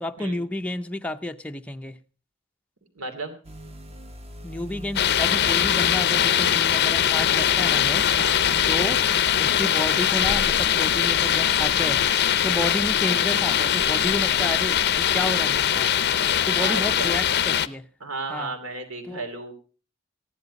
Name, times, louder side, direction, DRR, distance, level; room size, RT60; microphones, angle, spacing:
voice 1, 0.0-2.0 4.4-8.0 8.7-9.0 9.4-12.0 12.4-15.9 16.4-17.9 18.3-18.5 19.1-19.2, left 1 dB, 5° left, 5 dB, 0.5 m, -31 dB
voice 2, 2.9-3.3 8.1-8.4 16.6-17.2 18.0-19.5, right 3 dB, 80° right, 6 dB, 2.7 m, -33 dB
sound 1, 3.4-12.1, equal, 30° right, 1.1 m, -42 dB
sound 2, 5.0-17.7, left 9 dB, 50° left, 0.5 m, -21 dB
14.5 x 10.5 x 5.2 m, 0.37 s
head